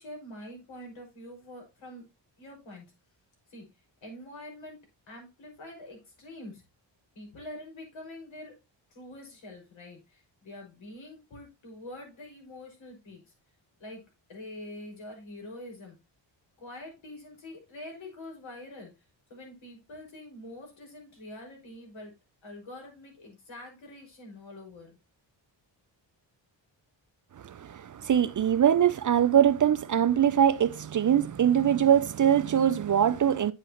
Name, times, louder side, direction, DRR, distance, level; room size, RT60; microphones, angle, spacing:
voice 1, 0.0-2.0 2.4-2.9 3.5-3.7 4.0-4.8 5.1-6.6 7.1-8.6 8.9-13.3 13.8-16.0 16.6-18.9 19.3-22.1 22.4-25.0, left 1 dB, 80° left, 5.7 m, -45 dB
voice 2, 27.4-33.5, right 9 dB, 45° right, 0.5 m, -23 dB
9.5 x 7.7 x 2.9 m
wide cardioid pair, 155°, 46 cm